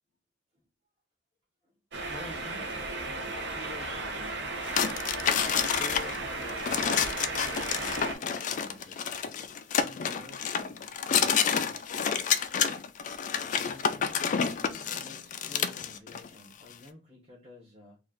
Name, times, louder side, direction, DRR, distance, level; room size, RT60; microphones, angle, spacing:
sound 1, 1.9-8.1, right 2 dB, 60° right, 0.8 m, -35 dB
voice 1, 2.1-4.6 5.5-9.0 9.6-10.9 13.4-14.2 14.8-18.0, left 2 dB, 30° right, -6 dB, 1.1 m, -50 dB
sound 2, 4.6-16.3, left 7 dB, 40° left, 0.3 m, -29 dB
3.1 x 2.4 x 3.7 m, 0.32 s
head